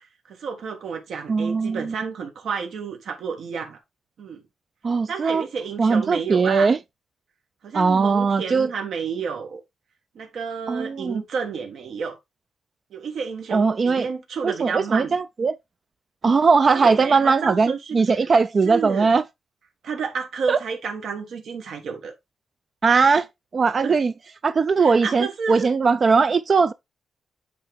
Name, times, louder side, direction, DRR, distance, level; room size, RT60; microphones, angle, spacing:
voice 1, 0.0-3.8 4.2-4.4 5.1-6.7 7.6-9.6 10.1-12.2 12.9-15.1 16.8-18.0 18.6-19.1 19.8-22.1 23.8-24.0 24.8-25.7, right 5 dB, 70° right, 1.4 m, -31 dB
voice 2, 1.3-1.9 4.8-5.4 5.8-6.8 7.7-8.7 10.7-11.2 13.5-14.1 14.4-15.6 16.2-19.2 20.5-20.6 22.8-23.3 23.5-24.1 24.4-26.7, right 4 dB, 35° right, 0.3 m, -19 dB
8.5 x 3.6 x 3.4 m
wide cardioid pair, 150°, 0 cm